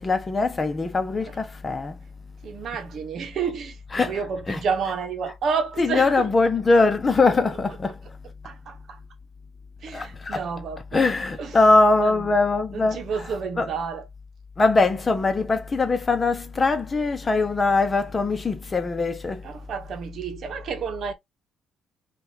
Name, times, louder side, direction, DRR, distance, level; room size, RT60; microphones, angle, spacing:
voice 1, 0.0-2.0 3.9-4.1 4.5-4.6 5.8-8.0 9.9-10.4 10.9-13.0 13.6-13.7 14.6-19.4, left 3 dB, 25° left, 0.8 m, -21 dB
voice 2, 2.4-6.3 8.4-9.0 9.8-11.1 11.4-11.6 12.0-12.3 12.7-14.1 19.4-21.1, right 6 dB, 60° right, 0.9 m, -30 dB
5.4 x 2.5 x 2.8 m
cardioid pair, 100°, 0 cm